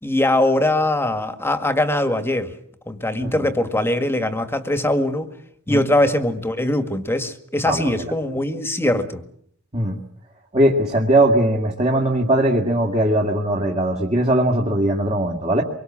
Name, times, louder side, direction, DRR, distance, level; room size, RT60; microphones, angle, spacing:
voice 1, 0.0-2.5 2.9-5.3 5.7-9.2, left 1 dB, 10° left, 8 dB, 1.8 m, -21 dB
voice 2, 10.5-15.6, right 1 dB, 30° right, 0 dB, 2.3 m, -19 dB
25.0 x 23.5 x 7.5 m, 0.66 s
head